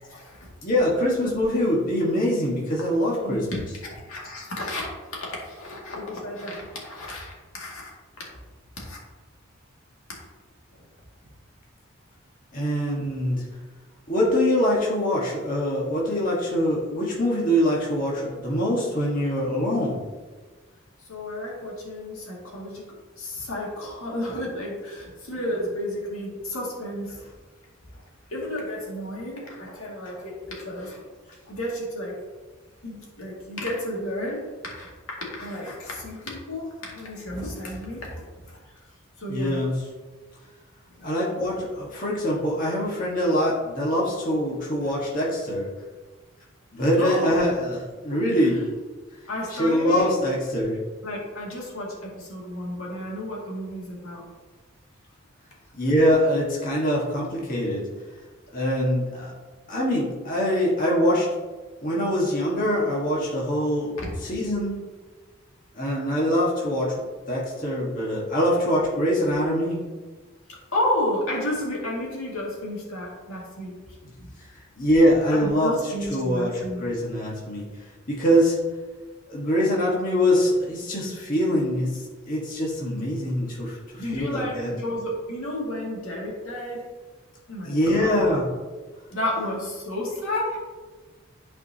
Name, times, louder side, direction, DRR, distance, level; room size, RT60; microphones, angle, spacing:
voice 1, 0.1-0.5 3.2-3.4 4.1-4.9 5.2-7.9 8.8-9.0 21.1-22.8 23.2-27.2 28.3-31.0 31.5-32.2 32.8-34.9 35.3-38.6 39.2-39.6 41.0-41.1 47.0-47.5 48.0-48.2 49.3-50.1 51.0-54.2 64.0-64.1 70.5-73.7 74.2-74.3 75.3-76.9 84.0-86.9 87.5-88.2 89.1-90.6, left 1 dB, 85° left, -3 dB, 2.2 m, -32 dB
voice 2, 0.6-3.7 12.5-13.4 14.1-20.0 39.3-39.8 41.0-45.7 46.7-48.6 49.5-50.8 55.7-57.8 58.5-59.3 59.7-61.3 61.8-63.9 64.2-64.8 65.7-69.8 74.0-74.1 74.8-77.7 78.1-78.6 79.3-84.7 87.6-88.5, equal, 40° left, -5 dB, 1.5 m, -24 dB
12.0 x 4.7 x 2.8 m, 1.4 s
head